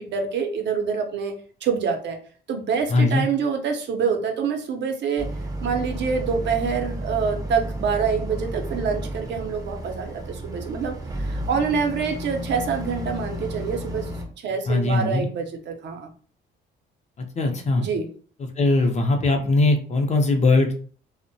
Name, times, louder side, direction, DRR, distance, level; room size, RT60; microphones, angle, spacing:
voice 1, 0.0-2.2 2.5-5.3 5.6-14.1 14.4-16.1 17.8-18.1, right 6 dB, 65° right, 4 dB, 0.6 m, -26 dB
voice 2, 2.9-3.3 14.7-15.3 17.4-17.9 18.6-20.7, left 2 dB, 35° left, 4 dB, 0.6 m, -20 dB
Boat Water vehicle, 5.2-14.2, right 1 dB, 20° right, 0.6 m, -32 dB
2.5 x 2.1 x 2.6 m, 0.43 s
cardioid pair, 90°, 20 cm